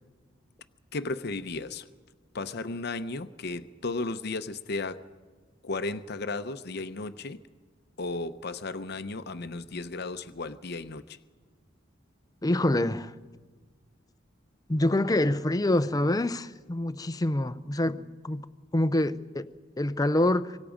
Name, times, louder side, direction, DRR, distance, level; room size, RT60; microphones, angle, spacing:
voice 1, 0.9-1.9 2.3-5.1 5.6-7.4 8.0-11.2, left 3 dB, 55° left, 0.8 m, -34 dB
voice 2, 12.4-13.1 14.7-19.5 19.8-20.6, left 1 dB, 20° left, 0.6 m, -26 dB
26.0 x 24.5 x 5.1 m
head